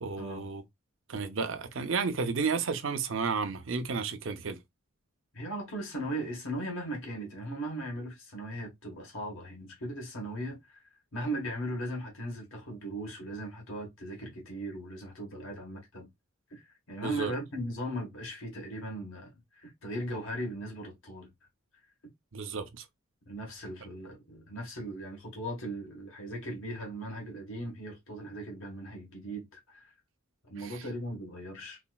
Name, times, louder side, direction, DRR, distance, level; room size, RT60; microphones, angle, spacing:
voice 1, 0.0-0.6 1.1-4.6 17.0-17.3 22.3-22.8 30.6-30.8, right 5 dB, 65° right, 0.6 m, -32 dB
voice 2, 5.3-10.8 11.1-16.1 16.5-21.3 23.3-29.9 30.5-31.8, right 1 dB, 65° left, 1.2 m, -38 dB
4.1 x 2.4 x 2.3 m
head